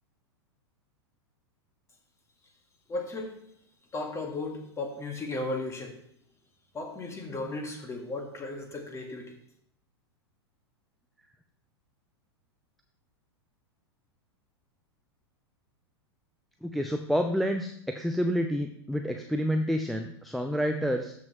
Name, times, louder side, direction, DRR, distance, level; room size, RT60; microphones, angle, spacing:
voice 1, 2.9-3.3 3.9-6.0 6.7-9.4, left 2 dB, 20° left, 3 dB, 1.8 m, -35 dB
voice 2, 16.6-21.1, equal, ahead, 5 dB, 0.5 m, -29 dB
13.0 x 5.6 x 3.0 m, 0.66 s
figure-of-eight pair, 95°, 14 cm